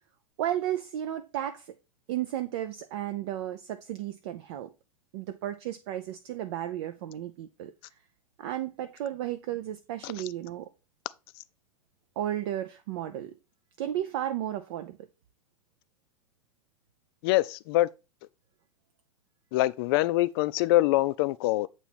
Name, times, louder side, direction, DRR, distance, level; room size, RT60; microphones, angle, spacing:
voice 1, 0.4-1.7 2.1-4.7 5.1-7.7 8.4-10.7 12.2-13.3 13.8-15.0, right 12 dB, 50° right, 0.5 m, -33 dB
voice 2, 17.2-17.9 19.5-21.7, left 17 dB, 45° left, 0.4 m, -24 dB
7.9 x 3.0 x 4.2 m
figure-of-eight pair, 95°, 18 cm